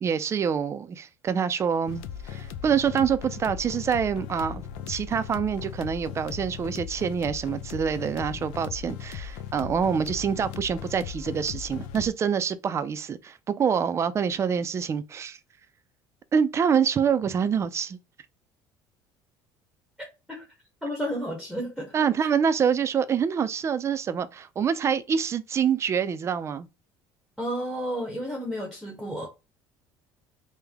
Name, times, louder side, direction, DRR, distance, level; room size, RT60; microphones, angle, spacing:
voice 1, 0.0-4.6 4.9-15.4 16.3-18.0 21.9-26.7, right 7 dB, 30° right, 0.4 m, -26 dB
sound 1, 1.9-12.1, left 8 dB, 85° left, 0.4 m, -38 dB
voice 2, 20.8-22.1 27.4-29.3, equal, ahead, 0.8 m, -32 dB
3.3 x 2.1 x 3.4 m
cardioid pair, 115°, 9 cm